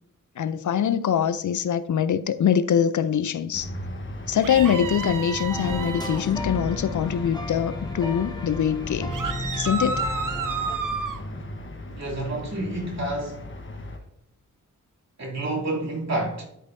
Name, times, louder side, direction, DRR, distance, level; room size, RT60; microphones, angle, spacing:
voice 1, 0.4-3.7 4.3-9.2 9.5-10.1, left 8 dB, 65° left, 0.5 m, -23 dB
sound 1, 3.5-14.0, left 1 dB, 40° left, 1.1 m, -36 dB
sound 2, 4.4-6.2 9.1-11.2, right 4 dB, 70° right, 0.9 m, -30 dB
sound 3, 5.5-10.8, left 1 dB, 15° left, 0.8 m, -35 dB
voice 2, 11.9-13.4 15.2-16.4, right 2 dB, 55° right, 2.8 m, -29 dB
11.5 x 5.4 x 2.6 m
wide cardioid pair, 100°, 32 cm